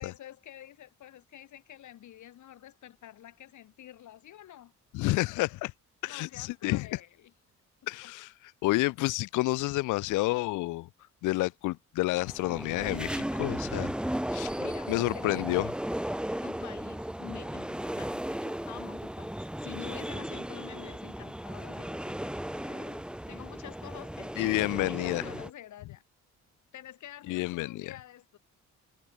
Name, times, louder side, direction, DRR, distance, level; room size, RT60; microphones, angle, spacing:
voice 1, 0.0-4.7 6.1-7.3 7.8-8.1 14.6-15.7 16.4-26.0 26.7-28.4, left 12 dB, 75° left, 4.2 m, -48 dB
voice 2, 4.9-5.7 6.0-6.9 7.9-8.3 8.6-10.9 11.2-13.9 14.3-15.7 24.4-25.2 27.3-27.9, left 20 dB, 90° left, 0.5 m, -29 dB
sound 1, 12.2-25.5, equal, 5° right, 1.7 m, -36 dB
cardioid pair, 90°, 30 cm